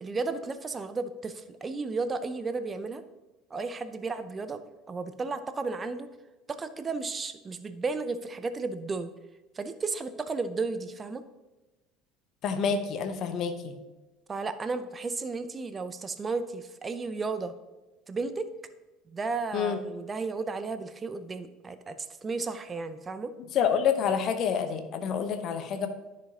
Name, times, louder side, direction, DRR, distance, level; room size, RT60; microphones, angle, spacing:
voice 1, 0.0-3.0 3.5-4.6 4.9-6.1 6.5-9.1 9.5-11.2 14.3-17.5 18.1-18.5 19.1-23.3, right 4 dB, 25° right, 11 dB, 0.5 m, -33 dB
voice 2, 12.4-13.7 19.5-19.8 23.5-25.9, left 7 dB, 45° left, 8 dB, 0.9 m, -28 dB
13.5 x 5.1 x 2.8 m, 1.1 s
figure-of-eight pair, 60°, 0 cm